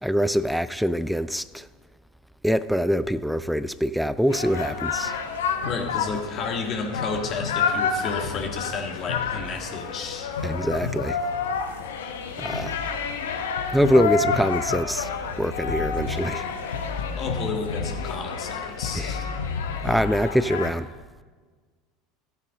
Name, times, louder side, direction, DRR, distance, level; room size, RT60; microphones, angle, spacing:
voice 1, 0.0-1.7 2.4-5.1 10.4-11.2 12.4-12.7 13.7-15.1 15.4-16.5 18.9-19.1 19.8-20.9, equal, ahead, 0.4 m, -24 dB
sound 1, 4.3-20.7, left 5 dB, 70° left, 0.9 m, -29 dB
voice 2, 5.6-10.3 17.2-19.3, left 4 dB, 45° left, 1.6 m, -32 dB
14.0 x 8.4 x 3.7 m
figure-of-eight pair, 70°, 0 cm